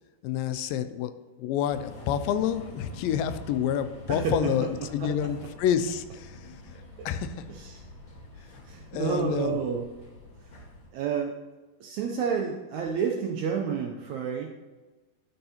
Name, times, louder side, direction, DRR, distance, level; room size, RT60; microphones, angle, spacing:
voice 1, 0.2-1.1 1.4-6.5 7.1-7.3 8.5-8.6 8.9-9.6, left 9 dB, 90° left, 10 dB, 2.3 m, -28 dB
sound 1, 1.6-10.9, left 1 dB, 45° left, 1.9 m, -47 dB
voice 2, 4.1-5.3 7.0-7.1 7.5-7.8 8.4-9.9 10.4-10.5 10.9-11.4 11.8-14.5, right 7 dB, 80° right, 1 dB, 1.7 m, -30 dB
11.5 x 5.5 x 2.8 m, 1.2 s
omnidirectional pair, 3.9 m